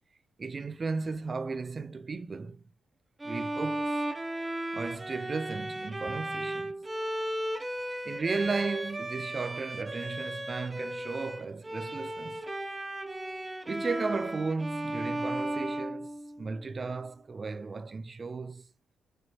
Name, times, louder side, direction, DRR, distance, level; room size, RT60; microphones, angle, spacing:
voice 1, 0.4-2.7 3.2-4.0 4.7-6.7 8.0-12.4 13.7-16.1 16.4-18.7, right 4 dB, 40° right, 0.7 m, -35 dB
Bowed string instrument, 3.2-16.7, right 1 dB, 20° right, 1.1 m, -35 dB
6.7 x 3.3 x 4.6 m
cardioid pair, 70°, 0 cm